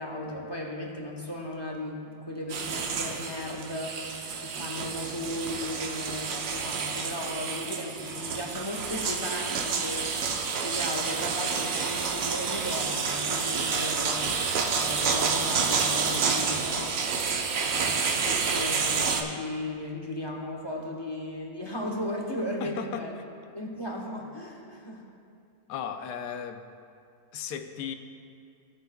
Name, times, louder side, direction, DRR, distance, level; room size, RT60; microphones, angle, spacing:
voice 1, 0.0-4.0 4.4-14.3 14.7-16.7 17.6-23.1 23.5-25.0, left 1 dB, 20° left, -1 dB, 0.8 m, -36 dB
sound 1, 2.5-19.2, right 5 dB, 65° right, 1.1 m, -29 dB
voice 2, 16.7-17.0 22.6-23.1 25.7-26.6 27.3-28.0, left 8 dB, 85° left, 7 dB, 1.2 m, -36 dB
17.0 x 8.0 x 2.3 m, 2.3 s
omnidirectional pair, 1.7 m